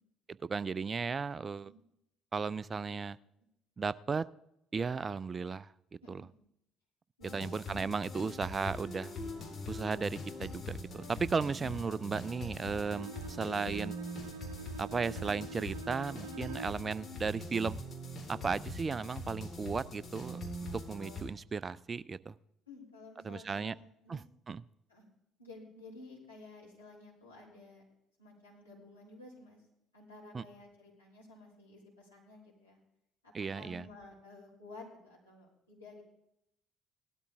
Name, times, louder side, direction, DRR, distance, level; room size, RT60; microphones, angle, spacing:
voice 1, 0.3-1.7 2.3-3.2 3.8-4.3 4.7-5.7 6.1-6.2 7.3-9.1 9.7-13.9 14.8-17.8 18.3-22.3 23.2-23.7 24.1-24.6 30.3-30.4 33.3-33.9, right 5 dB, 30° right, 18 dB, 0.5 m, -35 dB
voice 2, 6.0-6.4 7.2-7.6 22.7-24.2 24.9-25.1 25.4-27.8 28.2-29.6 29.9-32.8 33.2-36.0, left 2 dB, 90° left, -5 dB, 3.7 m, -53 dB
sound 1, 7.2-21.2, left 1 dB, 40° left, 4.1 m, -43 dB
Bowed string instrument, 12.8-16.9, right 5 dB, 80° right, 0.7 m, -46 dB
18.0 x 12.0 x 3.5 m, 0.79 s
figure-of-eight pair, 55°, 0 cm